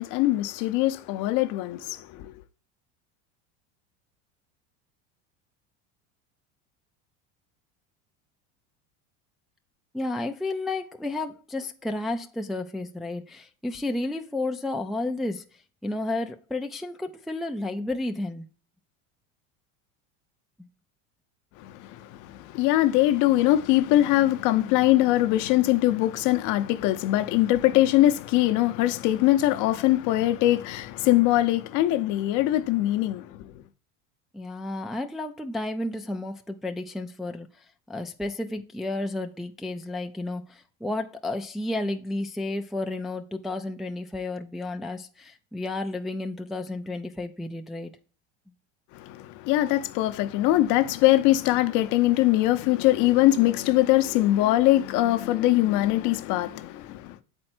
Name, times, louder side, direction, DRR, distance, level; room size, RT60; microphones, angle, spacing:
voice 1, 0.0-2.3 21.6-33.5 48.9-57.2, left 15 dB, 55° left, 0.7 m, -22 dB
voice 2, 9.9-15.4 15.8-18.5 34.3-47.9, left 2 dB, ahead, 0.4 m, -32 dB
7.6 x 4.4 x 4.3 m
supercardioid pair, 125°, 35 cm